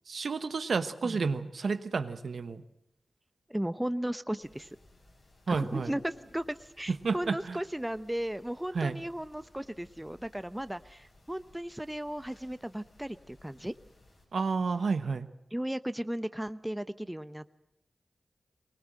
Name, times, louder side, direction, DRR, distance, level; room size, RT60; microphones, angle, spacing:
voice 1, 0.1-2.6 5.5-5.9 7.0-7.6 8.7-9.0 14.3-15.3, right 4 dB, 75° right, 10 dB, 1.1 m, -31 dB
voice 2, 3.5-4.7 5.5-13.7 15.5-17.6, right 1 dB, 10° right, 13 dB, 0.8 m, -36 dB
sound 1, 4.4-14.3, left 1 dB, 55° left, 6.4 m, -58 dB
20.5 x 19.5 x 7.7 m, 0.82 s
cardioid pair, 40°, 0 cm